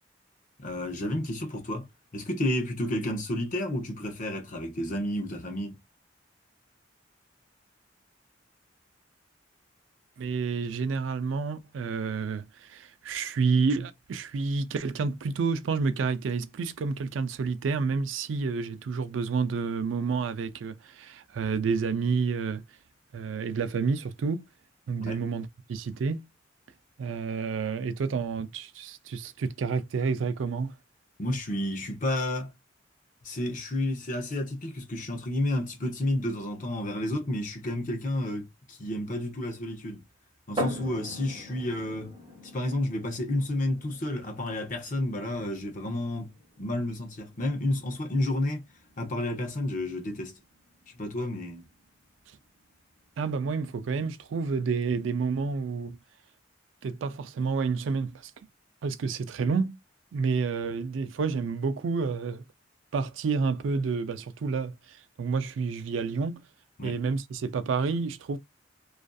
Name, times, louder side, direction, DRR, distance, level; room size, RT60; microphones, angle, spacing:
voice 1, 0.6-1.9 2.1-5.8 25.0-25.2 31.2-32.5 33.2-40.0 40.5-42.1 42.5-46.3 46.6-48.6 49.0-50.4 50.9-51.6 66.8-67.0, left 1 dB, 45° left, 0.6 m, -31 dB
voice 2, 10.2-22.6 23.1-24.5 24.9-26.3 27.0-30.8 53.2-56.0 56.8-58.3 58.8-59.8 60.1-62.4 62.9-66.4 66.8-68.4, right 5 dB, 85° right, 0.4 m, -29 dB
sound 1, 40.6-54.1, equal, 25° right, 0.6 m, -43 dB
2.5 x 2.4 x 2.3 m
head